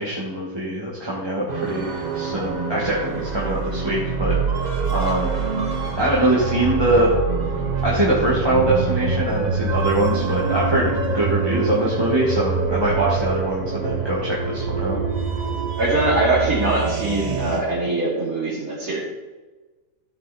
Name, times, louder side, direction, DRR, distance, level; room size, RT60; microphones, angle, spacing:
voice 1, 0.0-5.3 6.0-7.1 7.8-10.9 11.1-15.0, right 1 dB, 15° right, -6 dB, 1.5 m, -23 dB
sound 1, 1.5-17.6, right 4 dB, 35° right, 0.7 m, -25 dB
voice 2, 15.8-19.0, right 2 dB, 55° right, -9 dB, 3.0 m, -22 dB
14.0 x 5.7 x 4.2 m, 1.2 s
omnidirectional pair, 1.8 m